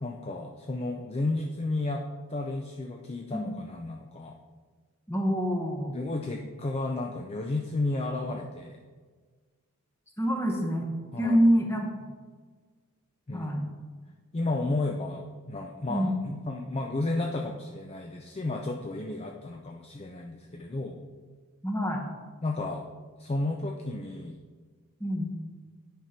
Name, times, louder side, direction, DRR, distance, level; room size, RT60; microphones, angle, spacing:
voice 1, 0.0-4.4 5.9-8.8 11.1-11.4 13.3-13.5 14.3-21.0 22.4-22.9 23.2-24.4, left 2 dB, 25° left, 2 dB, 0.4 m, -32 dB
voice 2, 5.1-6.0 10.2-10.9 11.2-11.9 13.3-13.6 15.9-16.1 21.6-22.0 25.0-25.3, equal, 10° left, 1 dB, 1.1 m, -26 dB
9.1 x 5.2 x 4.4 m, 1.5 s
head